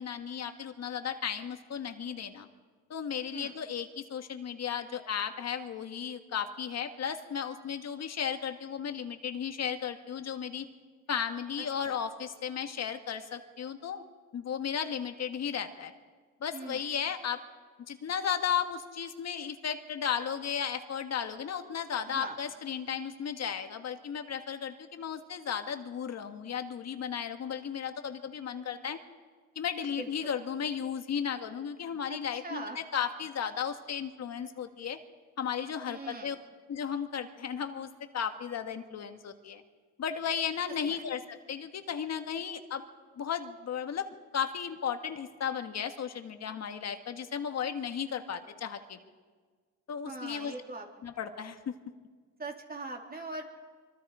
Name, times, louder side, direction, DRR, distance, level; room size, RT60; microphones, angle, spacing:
voice 1, 0.0-2.5 2.9-10.6 11.1-14.0 14.3-15.9 16.4-17.4 17.9-29.0 29.5-35.0 35.4-36.3 36.7-39.6 40.0-42.8 43.2-49.0 49.9-50.5 51.0-51.7, left 8 dB, 60° left, 7 dB, 1.8 m, -35 dB
voice 2, 16.5-16.9 22.1-22.4 30.0-30.1 32.1-32.2 32.4-32.8 35.9-36.4 40.9-41.0 50.0-50.9 52.4-53.4, right 2 dB, 30° right, 2 dB, 3.6 m, -41 dB
25.0 x 24.5 x 5.0 m, 1.5 s
cardioid pair, 90°, 30 cm